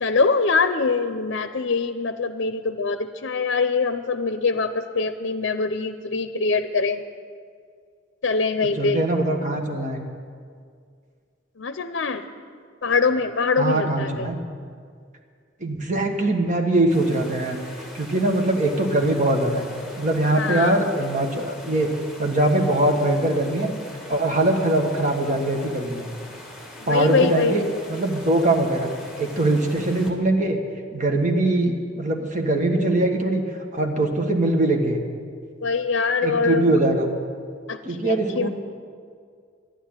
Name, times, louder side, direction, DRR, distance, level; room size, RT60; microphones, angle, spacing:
voice 1, 0.0-7.0 8.2-9.0 11.6-12.3 12.8-14.3 20.4-20.8 26.8-27.7 35.6-36.7 37.7-38.5, left 4 dB, 65° left, 9 dB, 0.6 m, -23 dB
voice 2, 8.7-10.0 13.6-14.4 15.6-17.6 17.9-19.6 20.0-21.9 22.2-23.7 24.1-26.1 26.9-27.6 27.9-28.9 29.2-30.6 30.9-33.4 33.7-35.0 36.2-37.1 37.8-38.5, right 1 dB, 40° right, 3 dB, 1.5 m, -22 dB
sound 1, 16.9-30.1, left 1 dB, ahead, 2.1 m, -42 dB
12.0 x 11.0 x 8.9 m, 2.1 s
head